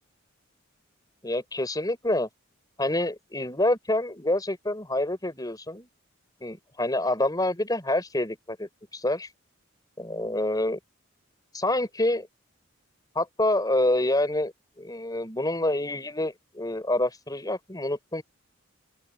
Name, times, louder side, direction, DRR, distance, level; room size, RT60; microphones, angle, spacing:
voice 1, 1.2-2.3 2.8-5.9 6.4-9.3 10.0-10.8 11.5-12.3 13.1-14.5 14.8-18.2, left 1 dB, 20° left, 4.0 m, -27 dB
open air
head